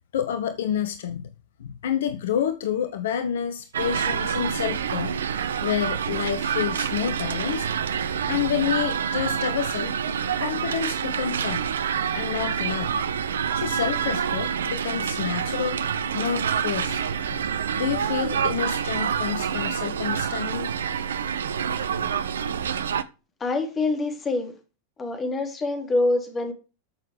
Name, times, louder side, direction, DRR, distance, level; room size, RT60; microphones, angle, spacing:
voice 1, 0.1-1.3 1.6-5.2 5.6-7.7 8.3-11.7 12.1-12.9 13.5-15.8 16.1-17.0 17.3-17.4 17.8-20.8, left 9 dB, 60° left, 1.0 m, -29 dB
sound 1, 3.7-23.0, right 7 dB, 65° right, 0.9 m, -27 dB
voice 2, 23.4-24.6 25.0-26.5, left 2 dB, 20° left, 3.6 m, -25 dB
14.0 x 6.7 x 4.9 m
figure-of-eight pair, 90°, 0 cm